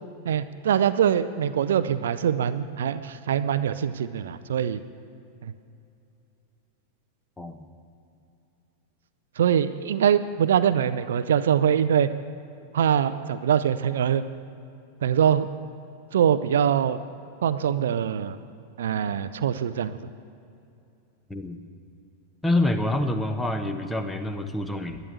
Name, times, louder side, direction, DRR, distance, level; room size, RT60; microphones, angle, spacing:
voice 1, 0.3-4.8 9.4-12.1 12.7-14.2 15.0-15.5 16.1-17.0 17.4-18.4 18.8-20.0, right 9 dB, 60° right, 12 dB, 0.5 m, -23 dB
voice 2, 7.4-7.7 21.3-21.6 22.4-25.0, left 1 dB, 10° left, 8 dB, 1.0 m, -26 dB
12.0 x 10.0 x 8.1 m, 2.7 s
figure-of-eight pair, 90°, 0 cm